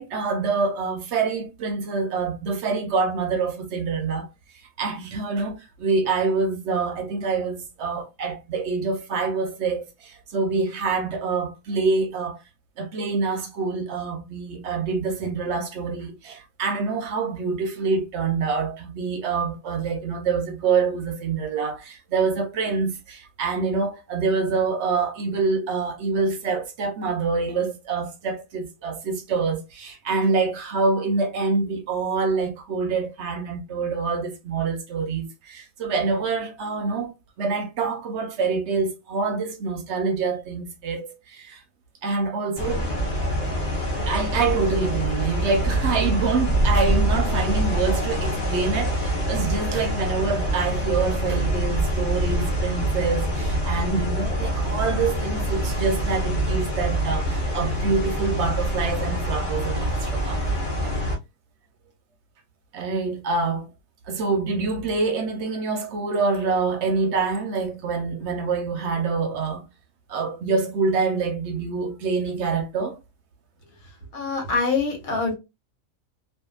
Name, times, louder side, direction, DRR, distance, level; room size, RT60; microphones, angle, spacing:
voice 1, 0.0-4.3 4.8-12.4 12.8-41.6 42.0-42.9 44.0-60.4 60.8-61.0 62.7-63.7 64.1-69.7 70.1-73.0, right 4 dB, 65° right, 0.8 m, -26 dB
sound 1, 42.6-61.2, right 1 dB, 45° left, 0.8 m, -25 dB
voice 2, 74.1-75.3, left 4 dB, 85° left, 1.4 m, -24 dB
2.6 x 2.4 x 2.3 m
omnidirectional pair, 1.4 m